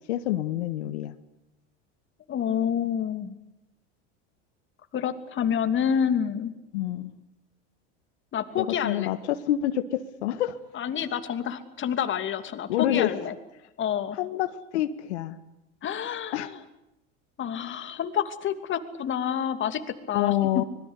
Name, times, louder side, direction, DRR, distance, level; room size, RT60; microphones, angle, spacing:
voice 1, 0.1-1.1 6.7-7.1 8.5-10.5 12.7-13.1 14.1-14.5 14.7-15.4 16.3-16.5 20.1-20.6, left 13 dB, 85° left, 9 dB, 1.6 m, -27 dB
voice 2, 2.3-3.4 4.9-6.5 8.3-9.1 10.7-13.3 13.8-14.2 15.8-16.5 17.4-20.6, left 8 dB, 35° left, 8 dB, 2.8 m, -28 dB
25.5 x 21.5 x 8.3 m, 0.91 s
supercardioid pair, 115°, 33 cm